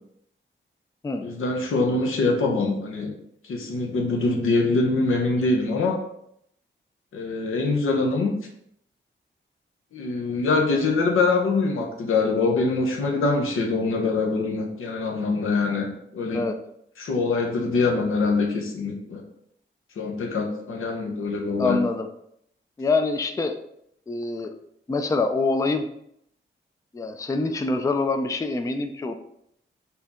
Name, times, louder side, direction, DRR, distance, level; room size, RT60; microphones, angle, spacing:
voice 1, 1.2-3.1 3.4-6.0 7.1-8.3 9.9-16.5 17.0-19.2 20.0-21.8, left 3 dB, 90° left, 1 dB, 0.8 m, -24 dB
voice 2, 21.6-22.1 22.8-23.5 24.1-24.5 24.9-25.9 26.9-29.1, left 3 dB, 15° left, 7 dB, 0.3 m, -25 dB
4.3 x 2.8 x 3.5 m, 0.74 s
wide cardioid pair, 90°, 20 cm